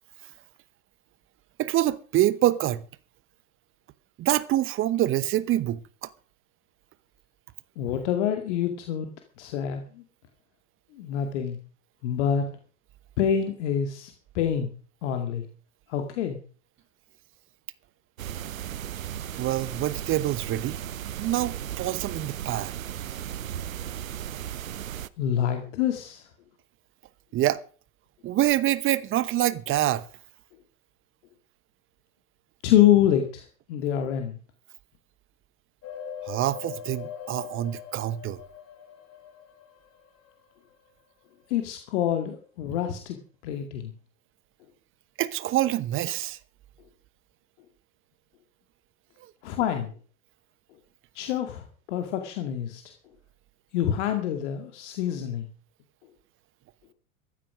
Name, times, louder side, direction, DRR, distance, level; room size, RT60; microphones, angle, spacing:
voice 1, 1.6-2.8 4.2-6.1 19.4-20.8 21.2-22.7 27.3-27.6 28.2-30.0 36.2-38.4 45.2-46.4, right 14 dB, 30° right, 1.0 m, -26 dB
voice 2, 7.8-9.1 9.4-10.0 10.9-11.6 12.0-12.5 13.2-14.7 15.0-15.5 15.9-16.4 25.2-26.3 32.6-34.4 41.5-43.9 49.4-49.9 51.1-52.8 53.7-55.5, left 10 dB, 55° left, 2.3 m, -26 dB
sound 1, 18.2-25.1, right 10 dB, 70° right, 0.9 m, -36 dB
sound 2, 35.8-40.5 40.9-41.0, left 8 dB, 35° left, 3.5 m, -41 dB
15.0 x 12.5 x 4.9 m
figure-of-eight pair, 90°, 42 cm